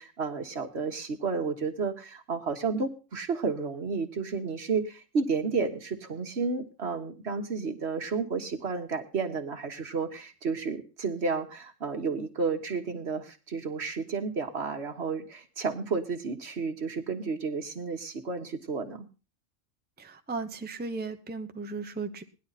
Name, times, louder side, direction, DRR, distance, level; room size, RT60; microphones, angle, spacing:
voice 1, 0.0-19.1, right 4 dB, 60° right, 6 dB, 1.6 m, -32 dB
voice 2, 20.0-22.2, right 4 dB, 10° right, 7 dB, 0.7 m, -36 dB
18.0 x 11.0 x 4.1 m, 0.33 s
omnidirectional pair, 1.3 m